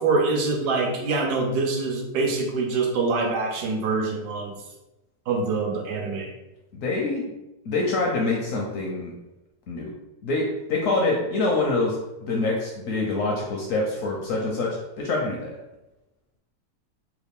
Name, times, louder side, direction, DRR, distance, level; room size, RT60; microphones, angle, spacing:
voice 1, 0.0-4.6 5.3-6.3, right 3 dB, 80° right, 1 dB, 1.2 m, -25 dB
voice 2, 6.7-7.3 7.7-9.1 9.7-9.9 10.2-15.6, left 2 dB, 70° left, -1 dB, 0.8 m, -25 dB
3.2 x 2.3 x 3.4 m, 0.96 s
omnidirectional pair, 1.7 m